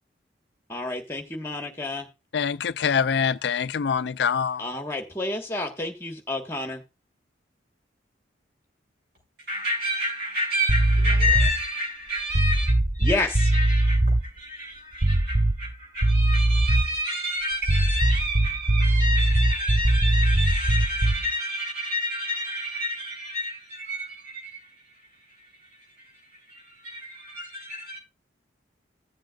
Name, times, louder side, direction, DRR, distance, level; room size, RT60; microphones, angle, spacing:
voice 1, 0.7-2.1 4.6-6.8 13.0-13.5, left 2 dB, 15° left, 1.5 m, -30 dB
voice 2, 2.3-4.6, left 7 dB, 70° left, 0.4 m, -24 dB
voice 3, 9.5-28.0, left 1 dB, 55° right, 6.9 m, -30 dB
sound 1, 10.7-11.6 12.3-14.2 15.0-15.7 16.0-17.0 17.6-21.3, right 1 dB, 15° right, 0.5 m, -21 dB
15.0 x 7.6 x 2.5 m
head